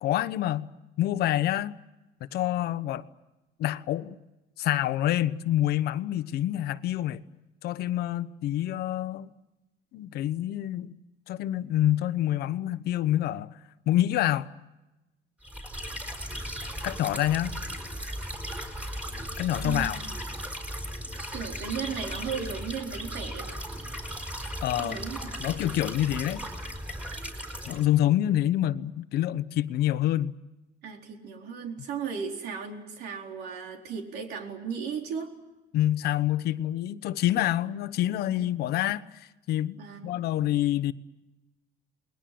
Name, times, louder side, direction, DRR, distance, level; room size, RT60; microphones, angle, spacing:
voice 1, 0.0-0.7 1.0-1.7 2.3-3.1 3.6-4.2 4.6-7.2 7.6-9.3 9.9-10.9 11.3-13.5 13.9-14.5 16.8-17.5 19.4-20.0 24.6-25.0 25.4-26.4 27.7-30.3 35.7-39.8 40.0-40.9, left 13 dB, 65° left, 1.0 m, -27 dB
sound 1, 15.4-27.9, equal, 5° right, 4.4 m, -36 dB
voice 2, 19.6-20.1 21.3-23.6 24.8-25.3 30.8-35.3 38.4-38.5 39.8-40.2, right 6 dB, 70° right, 4.3 m, -36 dB
29.0 x 21.0 x 7.7 m
cardioid pair, 145°, 17 cm